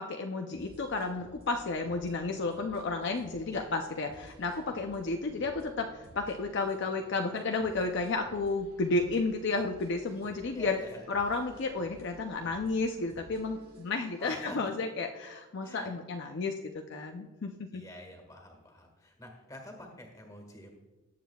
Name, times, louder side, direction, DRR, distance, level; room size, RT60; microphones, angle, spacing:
voice 1, 0.0-10.8 11.1-17.8, left 3 dB, 55° left, 4 dB, 0.5 m, -32 dB
sound 1, 0.5-14.6, right 1 dB, 85° right, 2.4 m, -55 dB
voice 2, 10.5-11.2 14.2-14.6 15.6-15.9 17.7-20.7, left 1 dB, 15° left, 2 dB, 1.7 m, -47 dB
18.5 x 7.4 x 2.3 m, 1.2 s
head